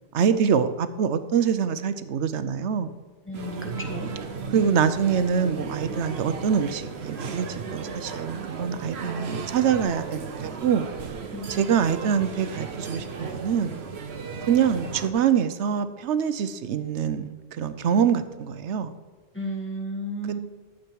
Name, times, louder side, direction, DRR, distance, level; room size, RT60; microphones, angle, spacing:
voice 1, 0.1-2.9 4.5-10.9 11.5-13.8 14.5-18.9, right 7 dB, 90° right, 12 dB, 1.0 m, -25 dB
voice 2, 3.3-4.1 11.3-11.7 19.3-20.4, right 1 dB, 10° left, 1 dB, 1.6 m, -33 dB
sound 1, 3.3-15.1, right 5 dB, 70° right, 1.2 m, -35 dB
12.5 x 7.5 x 4.6 m, 1.5 s
omnidirectional pair, 1.1 m